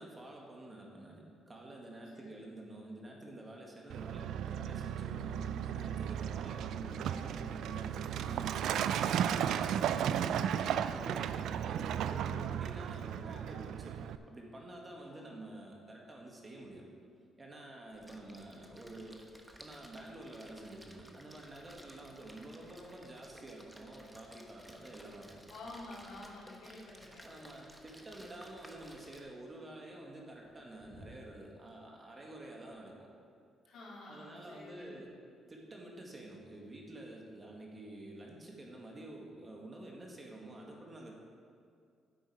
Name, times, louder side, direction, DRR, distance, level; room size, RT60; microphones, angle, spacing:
voice 1, 0.0-16.9 17.4-19.2 19.6-25.5 27.2-32.9 34.1-35.1 35.5-41.1, right 1 dB, 30° right, -1 dB, 1.8 m, -49 dB
Truck, 3.9-14.2, right 9 dB, 80° right, 0.3 m, -35 dB
voice 2, 10.4-10.9 14.9-15.4 18.0-18.7 22.0-22.3 25.5-27.3 33.7-35.0, left 2 dB, 75° left, -5 dB, 2.6 m, -51 dB
Splash splatter, 17.9-29.2, equal, 5° right, 1.0 m, -57 dB
sound 1, 27.4-28.2 28.6-29.0 30.3-31.7, right 1 dB, 60° right, 2.2 m, -60 dB
9.6 x 7.8 x 5.0 m, 2.3 s
cardioid pair, 90°, 0 cm